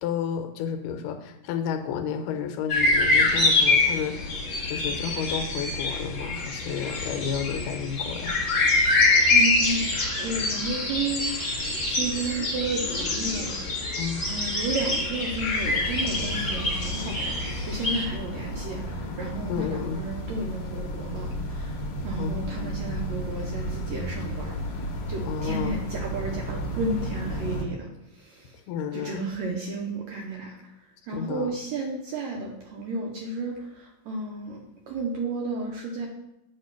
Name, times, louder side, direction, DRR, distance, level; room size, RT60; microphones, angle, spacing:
voice 1, 0.0-4.4 4.7-8.4 14.0-14.3 19.5-20.0 22.2-22.4 25.3-25.8 28.7-29.3 31.1-31.5, left 7 dB, 85° left, 6 dB, 2.2 m, -31 dB
sound 1, 2.7-18.1, left 2 dB, 40° left, 2.3 m, -25 dB
voice 2, 9.3-9.9 10.1-11.2 11.9-13.6 14.3-28.5 28.9-30.6 31.1-34.6 34.9-36.1, right 3 dB, 75° right, 0 dB, 1.6 m, -32 dB
sound 2, 15.7-27.6, equal, 70° left, 1.9 m, -33 dB
8.4 x 2.9 x 5.7 m, 0.88 s
omnidirectional pair, 3.9 m